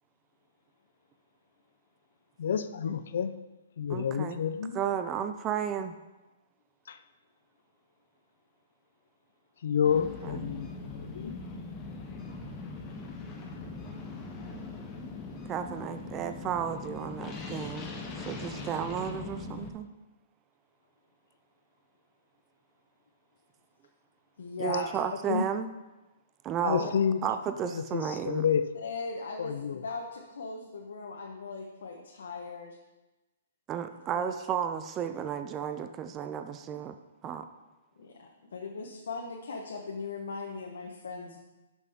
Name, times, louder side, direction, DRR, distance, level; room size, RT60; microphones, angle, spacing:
voice 1, 2.4-3.3 3.8-4.8 6.9-7.0 9.6-11.4 25.1-25.5 26.6-27.2 27.6-28.7 29.4-29.8, left 7 dB, 60° left, 12 dB, 0.5 m, -29 dB
voice 2, 3.9-4.4 4.7-6.0 10.0-10.5 15.5-19.9 24.6-25.7 26.4-26.9 27.2-28.4 33.7-37.0 37.2-37.4, right 8 dB, 15° right, 9 dB, 0.3 m, -33 dB
sound 1, 9.8-19.7, left 3 dB, 15° left, 0.8 m, -41 dB
voice 3, 24.4-25.0 26.8-26.9 28.8-32.8 34.1-34.3 38.0-41.4, left 4 dB, 85° left, 0 dB, 1.1 m, -39 dB
11.5 x 6.1 x 3.6 m, 1.1 s
hypercardioid pair, 175°, 0 cm